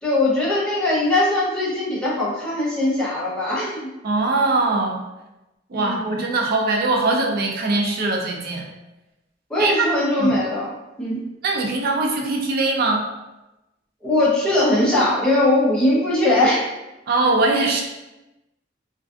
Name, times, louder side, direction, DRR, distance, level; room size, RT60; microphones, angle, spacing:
voice 1, 0.0-3.9 5.7-6.2 9.5-10.7 11.0-11.2 14.0-16.7, left 1 dB, 5° left, -8 dB, 0.7 m, -20 dB
voice 2, 4.0-5.0 5.7-8.7 9.6-9.9 10.2-10.3 11.4-13.0 17.1-17.8, right 3 dB, 50° right, 1 dB, 0.4 m, -21 dB
2.4 x 2.3 x 2.3 m, 1.0 s
head